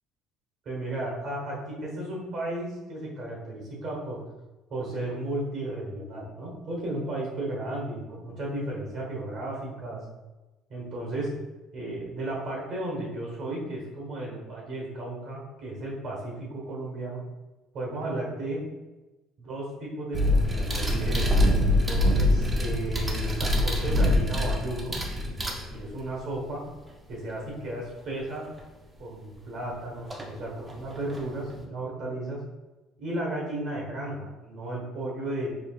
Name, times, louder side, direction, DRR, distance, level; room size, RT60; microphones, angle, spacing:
voice 1, 0.6-4.2 4.7-10.0 10.7-11.3 11.7-17.2 17.7-18.6 19.4-25.0 25.7-26.6 27.1-28.4 29.0-32.4 33.0-35.5, right 1 dB, 45° right, -2 dB, 1.0 m, -34 dB
sound 1, 20.1-26.1 28.6-28.7 30.1-30.3 30.7-31.6, left 1 dB, 15° right, 0.4 m, -24 dB
4.5 x 3.1 x 2.3 m, 1.1 s
cardioid pair, 165°, 0 cm